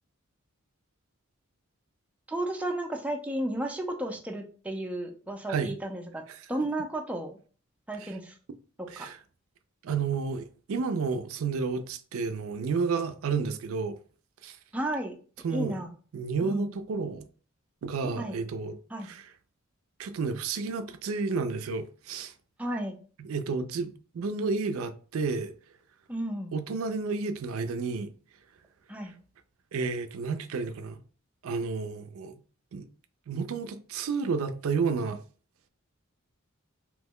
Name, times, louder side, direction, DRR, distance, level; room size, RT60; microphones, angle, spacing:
voice 1, 2.3-6.2 6.5-7.4 7.9-8.3 9.0-9.1 14.7-15.1 15.5-15.9 16.4-16.7 18.2-18.4 18.9-19.1 22.6-23.0 26.1-26.5 28.9-29.2, right 1 dB, 5° right, 0.4 m, -33 dB
voice 2, 8.9-9.2 9.8-14.0 14.4-14.6 15.4-15.8 16.1-17.3 17.8-18.8 19.0-19.3 20.0-22.3 23.2-25.5 26.5-28.1 29.0-29.1 29.7-31.0 31.4-32.4 32.7-32.9 33.3-35.2, right 4 dB, 70° right, 0.4 m, -31 dB
2.9 x 2.1 x 3.5 m
head